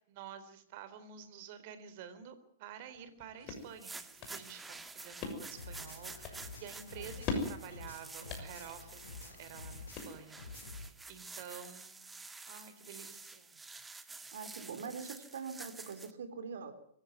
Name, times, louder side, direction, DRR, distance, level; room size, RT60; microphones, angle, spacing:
voice 1, 0.0-13.6, right 8 dB, 50° right, 12 dB, 3.9 m, -50 dB
sound 1, 2.9-10.6, left 4 dB, 35° left, 6.6 m, -44 dB
sound 2, 3.6-16.1, right 3 dB, 10° right, 1.8 m, -50 dB
sound 3, 5.5-10.9, left 3 dB, 75° left, 3.6 m, -49 dB
voice 2, 7.0-7.4 14.3-16.7, right 6 dB, 65° right, 8 dB, 3.7 m, -44 dB
24.5 x 15.5 x 9.5 m, 0.70 s
figure-of-eight pair, 105°, 0 cm